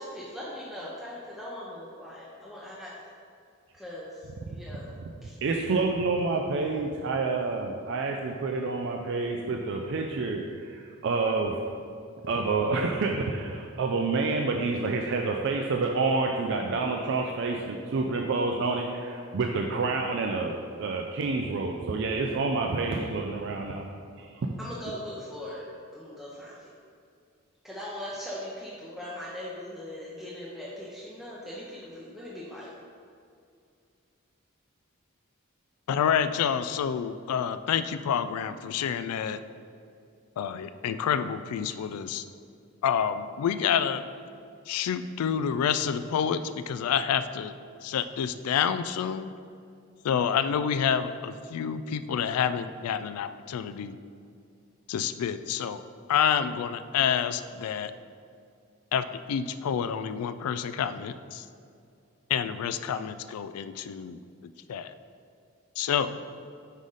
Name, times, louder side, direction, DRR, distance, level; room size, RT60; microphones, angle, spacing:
voice 1, 0.0-2.9 3.7-4.9 5.2-5.4 24.6-26.7 27.6-32.7, left 1 dB, ahead, -7 dB, 0.6 m, -40 dB
voice 2, 5.4-11.6 12.2-23.9 24.2-24.5, right 3 dB, 55° right, 2 dB, 0.3 m, -28 dB
voice 3, 35.9-39.4 40.4-42.2 42.8-44.0 44.7-47.5 47.8-49.3 50.0-53.9 54.9-55.8 56.1-57.9 58.9-61.4 62.3-64.2 64.7-64.9 65.8-66.1, left 8 dB, 90° left, 12 dB, 0.3 m, -28 dB
5.4 x 4.9 x 3.9 m, 2.4 s
head